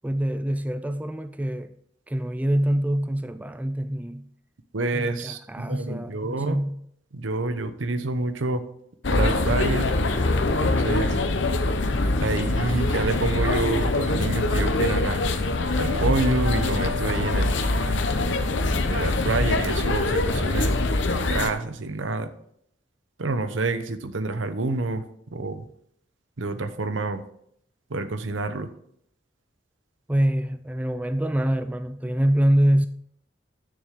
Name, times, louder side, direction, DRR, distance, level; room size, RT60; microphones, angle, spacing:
voice 1, 0.0-1.7 2.1-4.3 4.9-6.8 30.1-32.9, right 1 dB, 10° right, 0.3 m, -25 dB
voice 2, 4.7-6.6 7.1-8.6 9.1-9.9 10.6-11.2 12.2-15.2 15.7-17.6 18.8-20.8 21.1-22.3 23.2-25.0 25.3-25.7 26.4-27.2 27.9-28.7, right 3 dB, 80° right, 0.8 m, -28 dB
sound 1, 9.0-21.5, left 2 dB, 70° left, 0.9 m, -24 dB
sound 2, 15.8-19.5, left 2 dB, 60° right, 1.2 m, -38 dB
9.5 x 6.8 x 3.7 m
head